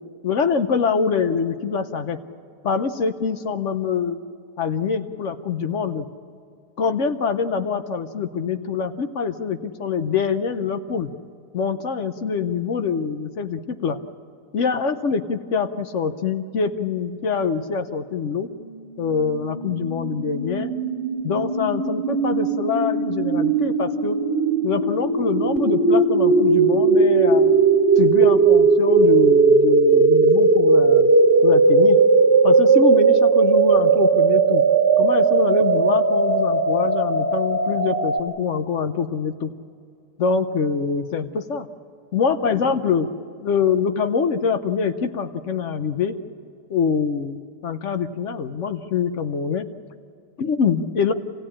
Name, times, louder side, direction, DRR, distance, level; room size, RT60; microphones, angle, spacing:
voice 1, 0.0-2.2 2.6-4.2 4.6-6.1 6.8-11.1 11.5-14.0 14.5-18.5 19.0-20.7 21.2-24.2 24.6-27.5 28.0-31.1 31.4-32.0 32.4-34.6 35.0-39.5 40.2-41.7 42.1-43.1 43.4-46.1 46.7-49.7 50.4-51.1, left 5 dB, 55° left, 9 dB, 0.9 m, -24 dB
sound 1, 19.0-38.2, right 4 dB, 35° right, 1.9 m, -18 dB
27.0 x 16.0 x 8.6 m, 2.4 s
omnidirectional pair, 1.8 m